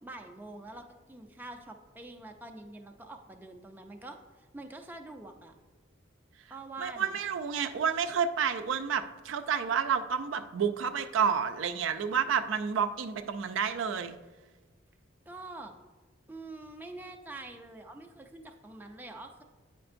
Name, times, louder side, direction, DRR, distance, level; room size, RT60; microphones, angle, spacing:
voice 1, 0.0-5.6 6.5-7.2 15.3-15.7 16.3-19.4, right 2 dB, 10° right, 3 dB, 0.4 m, -45 dB
voice 2, 6.8-14.2, right 7 dB, 75° right, 8 dB, 0.4 m, -30 dB
8.7 x 5.1 x 2.5 m, 1.2 s
head